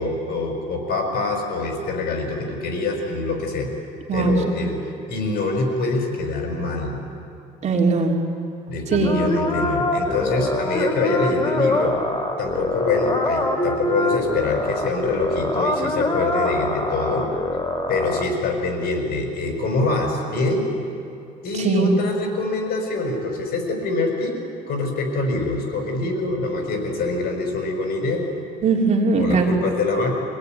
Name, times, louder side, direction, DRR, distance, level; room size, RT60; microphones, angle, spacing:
voice 1, 0.0-3.7 4.1-7.0 8.7-12.0 12.4-17.3 17.9-20.7 21.4-24.4 24.7-28.3 29.1-30.1, left 3 dB, 65° left, 3 dB, 5.4 m, -25 dB
voice 2, 7.6-8.1 8.9-9.2 21.6-21.9 28.6-29.5, right 4 dB, 45° right, 0 dB, 3.4 m, -19 dB
sound 1, 8.9-18.2, left 2 dB, 25° left, 2.7 m, -24 dB
25.0 x 18.0 x 9.3 m, 2.6 s
cardioid pair, 110°, 17 cm